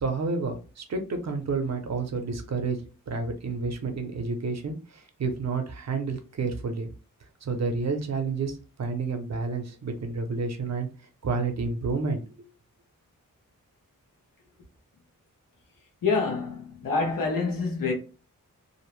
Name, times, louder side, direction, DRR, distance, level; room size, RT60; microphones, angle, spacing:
voice 1, 0.0-2.8 3.1-4.8 5.2-6.9 7.4-10.9 11.2-12.5, right 4 dB, 55° right, 0.5 m, -30 dB
voice 2, 16.0-17.9, left 4 dB, 85° left, 0.9 m, -26 dB
2.5 x 2.0 x 3.0 m
wide cardioid pair, 175°, 33 cm